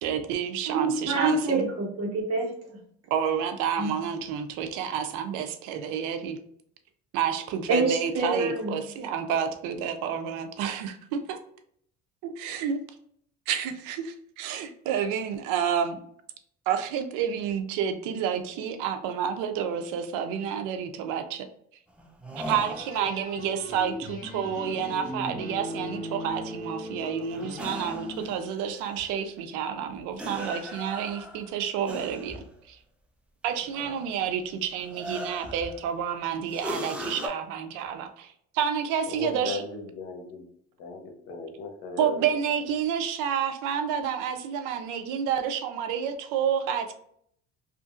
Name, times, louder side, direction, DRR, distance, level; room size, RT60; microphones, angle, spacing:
voice 1, 0.0-1.7 3.1-6.4 7.1-11.4 12.2-12.8 13.5-16.0 16.7-21.5 22.3-32.8 33.4-39.6 42.0-46.9, right 8 dB, 85° right, 7 dB, 0.5 m, -29 dB
voice 2, 0.7-2.8 3.8-3.9 7.7-8.8, right 3 dB, 55° right, -1 dB, 1.1 m, -27 dB
sound 1, 22.0-23.2 27.3-29.2 30.2-32.5 33.5-34.3 34.8-35.9 36.5-37.3, equal, 5° right, 0.4 m, -39 dB
sound 2, 22.7-28.3, left 1 dB, 30° left, 1.3 m, -38 dB
voice 3, 39.1-40.5 40.8-42.3, left 4 dB, 85° left, 3 dB, 0.8 m, -36 dB
2.8 x 2.5 x 2.4 m, 0.67 s
cardioid pair, 105°, 30 cm